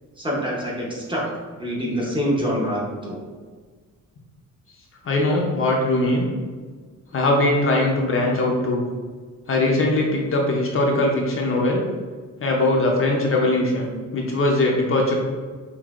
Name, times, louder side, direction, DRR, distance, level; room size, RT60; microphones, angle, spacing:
voice 1, 0.2-1.3 1.6-3.2, equal, 15° right, -4 dB, 0.8 m, -25 dB
voice 2, 5.0-6.3 7.1-8.8 9.5-11.9 12.4-15.1, left 2 dB, 45° left, -1 dB, 0.6 m, -21 dB
5.4 x 2.7 x 2.4 m, 1.5 s
wide cardioid pair, 155°, 31 cm